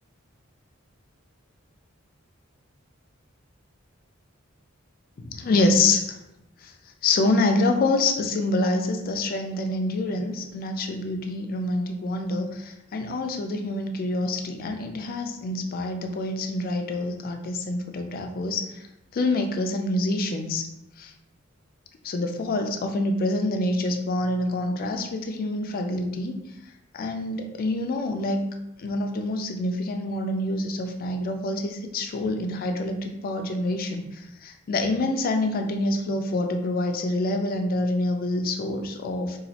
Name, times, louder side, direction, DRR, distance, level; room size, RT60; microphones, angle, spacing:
voice 1, 5.2-6.2 6.6-6.7 7.0-18.7 19.1-20.7 21.0-21.1 22.0-26.4 26.9-28.5 28.8-39.4, left 2 dB, 45° left, 5 dB, 0.4 m, -26 dB
3.0 x 2.4 x 2.7 m, 0.88 s
head